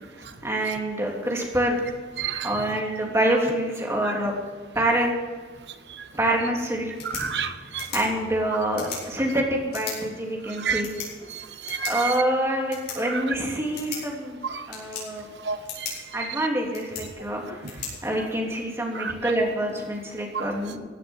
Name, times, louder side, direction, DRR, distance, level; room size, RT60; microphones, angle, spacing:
voice 1, 0.2-1.8 2.4-4.3 4.7-5.1 6.1-7.2 7.7-10.9 11.9-14.4 14.7-15.3 16.1-20.8, right 1 dB, 15° right, -1 dB, 3.2 m, -26 dB
voice 2, 2.2-2.5 7.2-7.9 10.6-10.8 11.3-12.1 14.5-14.7 15.4-15.9 19.0-19.1 20.3-20.4, right 6 dB, 70° right, 9 dB, 1.2 m, -29 dB
sound 1, 6.8-18.8, left 5 dB, 65° left, 6.5 m, -41 dB
16.5 x 9.6 x 7.4 m, 1.4 s
head